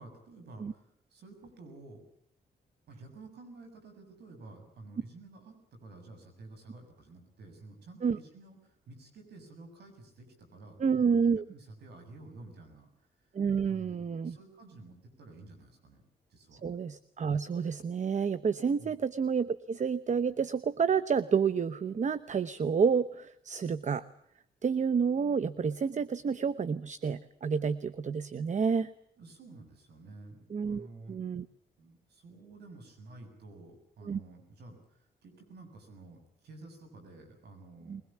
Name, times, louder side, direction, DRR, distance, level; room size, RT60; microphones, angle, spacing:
voice 1, 0.0-2.0 2.9-11.1 11.5-12.9 13.6-16.0 16.3-16.6 18.8-18.9 29.2-31.2 31.8-38.0, right 2 dB, 80° right, 5 dB, 7.1 m, -51 dB
voice 2, 10.8-11.4 13.3-14.4 16.5-24.0 24.6-28.9 30.5-31.5 34.0-34.2 37.9-38.0, right 6 dB, 45° right, 15 dB, 0.9 m, -29 dB
22.0 x 20.5 x 8.6 m, 0.70 s
cardioid pair, 75°, 17 cm